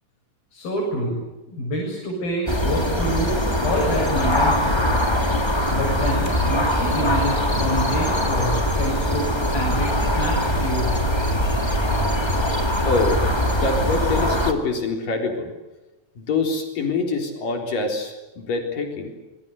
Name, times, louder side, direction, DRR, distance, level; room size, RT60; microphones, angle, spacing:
voice 1, 0.5-1.2 1.5-3.4 3.6-4.8 5.7-11.0, equal, 85° left, -2 dB, 9.4 m, -27 dB
sound 1, 2.5-14.5, left 1 dB, 10° left, 2.2 m, -22 dB
voice 2, 12.8-13.2 13.6-15.5 16.2-19.1, left 3 dB, 65° left, 4 dB, 5.5 m, -25 dB
26.5 x 24.0 x 8.0 m, 1.0 s
omnidirectional pair, 4.1 m